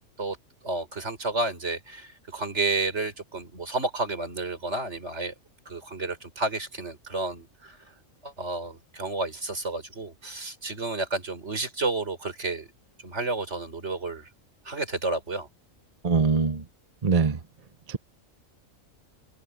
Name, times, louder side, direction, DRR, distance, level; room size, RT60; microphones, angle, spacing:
voice 1, 0.6-5.3 5.7-7.8 8.2-12.7 13.0-14.3 14.7-15.5, right 2 dB, 55° right, 5.3 m, -31 dB
voice 2, 16.0-16.6 17.0-17.4 17.9-18.0, right 5 dB, 35° right, 0.8 m, -22 dB
omnidirectional pair, 1.4 m